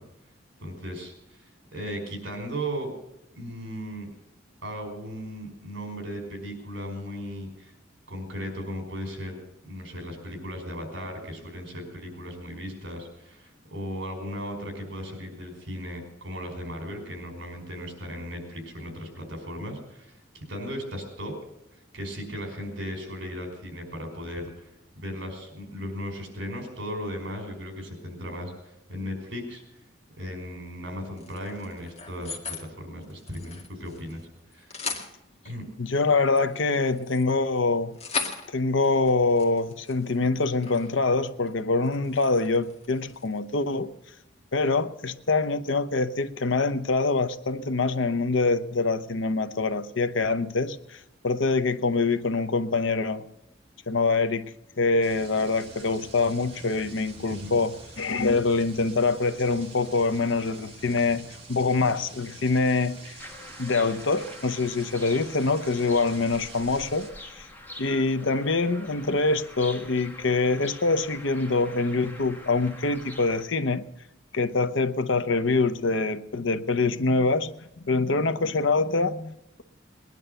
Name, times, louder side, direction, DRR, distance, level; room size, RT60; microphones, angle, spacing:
voice 1, 0.6-2.9 3.3-4.1 4.6-7.7 8.1-21.3 21.7-24.7 24.9-29.6 30.2-34.2 34.5-34.8 35.4-35.6 57.3-57.6, equal, 65° right, 4 dB, 5.2 m, -36 dB
sound 1, 31.2-32.7 33.0-34.2 34.5-35.1 36.0-41.0 41.3-41.5 41.8-43.4, left 4 dB, 35° left, 2.1 m, -38 dB
voice 2, 35.8-37.9 38.5-43.9 44.5-51.0 51.2-53.2 53.9-54.5 54.8-61.2 61.5-63.2 63.6-67.1 67.4-67.5 67.8-73.8 74.3-79.6, left 3 dB, 75° left, 12 dB, 0.8 m, -25 dB
sound 2, 55.0-67.1, right 3 dB, 30° right, 2.9 m, -47 dB
sound 3, 63.2-73.4, left 1 dB, 10° left, 1.5 m, -45 dB
20.0 x 11.0 x 6.8 m, 0.87 s
head